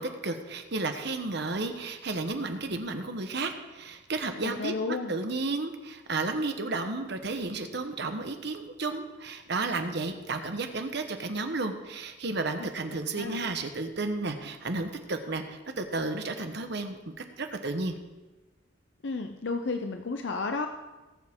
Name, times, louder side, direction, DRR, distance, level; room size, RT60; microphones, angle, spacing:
voice 1, 0.0-18.0, right 3 dB, 60° right, 6 dB, 1.1 m, -32 dB
voice 2, 4.4-5.1 13.2-13.4 19.0-20.7, left 3 dB, 65° left, 6 dB, 0.6 m, -32 dB
18.5 x 7.3 x 3.7 m, 1.2 s
head